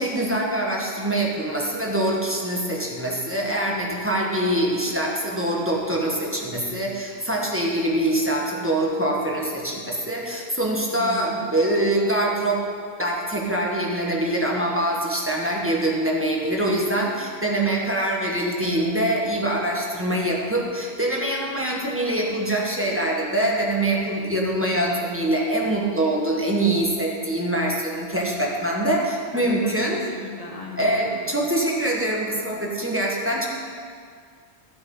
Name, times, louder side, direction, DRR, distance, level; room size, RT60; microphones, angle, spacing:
voice 1, 0.0-12.6 13.0-30.0 30.8-33.5, right 1 dB, 10° right, -3 dB, 1.5 m, -24 dB
voice 2, 11.0-11.5 29.3-29.8 30.1-31.2, left 3 dB, 30° left, -4 dB, 2.2 m, -37 dB
13.0 x 7.9 x 5.5 m, 2.1 s
omnidirectional pair, 1.2 m